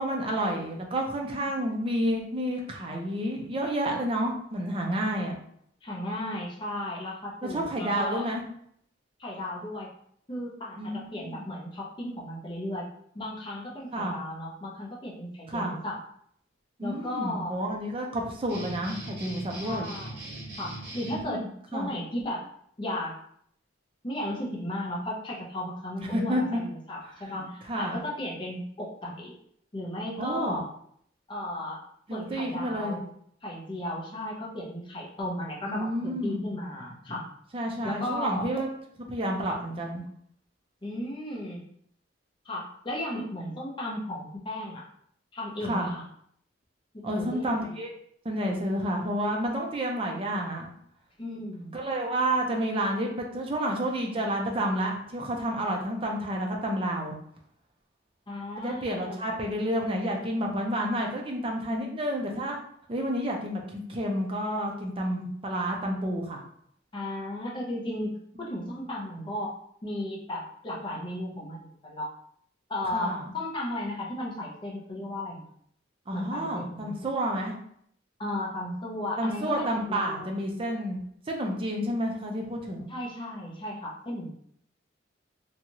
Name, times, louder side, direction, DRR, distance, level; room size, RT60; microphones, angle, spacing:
voice 1, 0.0-5.4 7.4-8.4 10.8-11.4 13.9-14.2 15.5-15.7 16.8-19.9 21.0-21.5 21.7-21.9 26.0-26.6 27.7-28.0 30.2-30.6 32.1-33.0 35.7-36.5 37.5-38.7 39.1-40.0 45.6-46.0 47.0-47.9 48.2-50.7 51.7-57.2 58.6-62.6 62.9-66.4 72.9-73.3 76.1-77.5 79.2-81.0 81.3-82.9, right 1 dB, 25° right, 0 dB, 0.5 m, -30 dB
voice 2, 5.8-8.2 9.2-9.9 10.3-12.9 13.1-16.0 16.8-17.6 19.6-20.3 20.6-21.4 21.7-22.4 22.8-23.2 24.0-29.3 29.7-30.7 31.3-31.8 32.1-33.1 33.4-37.2 37.8-38.5 39.5-39.6 40.8-41.6 42.4-44.8 45.3-46.0 46.9-47.7 51.2-51.8 58.3-59.3 66.9-69.5 69.8-72.1 72.7-75.5 76.1-77.0 78.2-80.4 82.9-84.3, left 1 dB, 25° left, -3 dB, 0.6 m, -35 dB
sound 1, 18.5-21.2, right 1 dB, 55° right, 0.8 m, -40 dB
2.6 x 2.3 x 2.9 m, 0.67 s
head